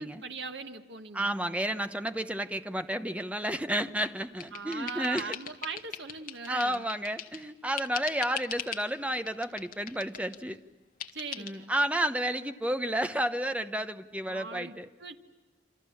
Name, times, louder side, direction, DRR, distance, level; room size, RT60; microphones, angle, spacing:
voice 1, 0.0-1.3 4.5-6.9 11.1-11.7 14.3-15.2, right 4 dB, 75° right, 6 dB, 1.4 m, -40 dB
voice 2, 1.1-5.3 6.5-10.6 11.4-14.9, right 1 dB, 5° right, 9 dB, 1.0 m, -31 dB
sound 1, 3.8-7.5 7.8-8.9 9.3-10.4 11.0-11.5, left 8 dB, 50° left, 1.8 m, -41 dB
28.0 x 26.5 x 7.3 m, 1.3 s
head